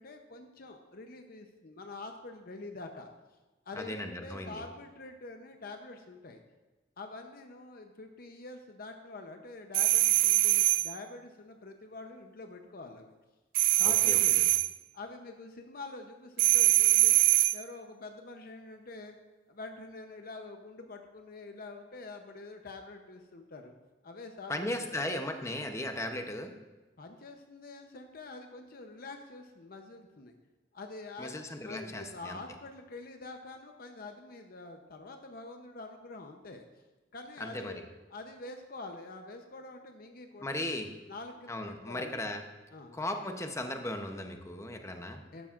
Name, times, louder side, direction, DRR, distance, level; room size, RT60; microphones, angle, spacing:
voice 1, 0.0-3.1 3.7-6.4 7.0-13.1 13.7-14.4 14.9-17.2 17.5-19.2 19.5-23.7 24.0-25.1 27.0-30.3 30.7-36.7 37.1-37.8 38.1-40.7 41.1-42.3 42.7-43.0 45.3-45.5, left 3 dB, 55° left, 5 dB, 0.8 m, -46 dB
voice 2, 3.8-4.6 13.9-14.5 24.5-26.5 31.2-32.4 37.4-37.7 40.4-40.9 41.5-42.4 42.9-45.2, left 1 dB, 15° left, 5 dB, 0.8 m, -37 dB
sound 1, 9.7-10.9 13.5-14.7 16.4-17.6, right 17 dB, 90° right, 0.3 m, -23 dB
13.0 x 11.5 x 2.5 m, 1.2 s
head